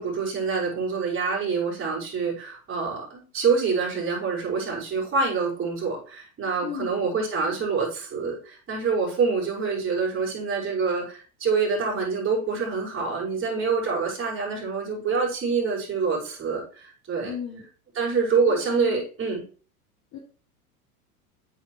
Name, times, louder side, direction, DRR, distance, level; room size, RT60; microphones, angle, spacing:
voice 1, 0.0-17.3 18.0-19.4, right 5 dB, 30° right, -4 dB, 5.4 m, -26 dB
voice 2, 6.6-7.1 17.2-17.7 18.5-19.1 20.1-20.2, left 8 dB, 40° left, -1 dB, 2.2 m, -36 dB
8.8 x 8.6 x 3.1 m, 0.40 s
hypercardioid pair, 95°, 44 cm